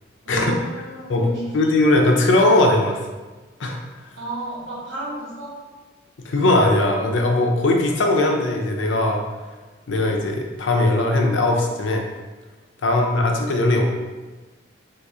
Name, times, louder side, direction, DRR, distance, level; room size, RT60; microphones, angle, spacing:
voice 1, 0.2-1.4 4.2-5.5 12.9-13.1, right 1 dB, 80° right, -6 dB, 1.1 m, -33 dB
voice 2, 1.5-3.1 3.6-3.8 6.2-9.2 9.9-12.0 12.8-13.8, left 2 dB, 80° left, 1 dB, 0.5 m, -19 dB
3.0 x 2.6 x 3.6 m, 1.3 s
head